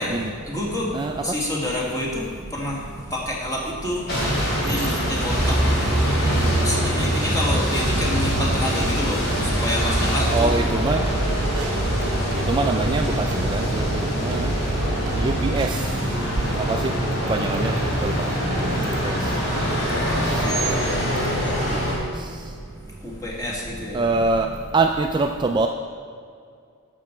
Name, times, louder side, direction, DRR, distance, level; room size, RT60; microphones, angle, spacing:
voice 1, 0.0-5.9 6.2-10.6 12.0-12.4 19.8-20.0 21.7-21.8 22.9-24.0, left 1 dB, 15° left, -4 dB, 1.8 m, -29 dB
sound 1, 4.1-21.9, equal, 50° left, 2.7 m, -23 dB
sound 2, 7.8-15.8, right 2 dB, 85° right, 0.7 m, -29 dB
voice 2, 10.3-11.0 12.5-14.5 15.2-16.1 16.6-16.9 17.2-18.3 18.6-19.2 20.6-20.8 21.7-21.8 23.9-24.5 24.7-25.7, right 3 dB, 20° right, 4 dB, 0.3 m, -24 dB
11.5 x 7.0 x 4.5 m, 2.3 s
head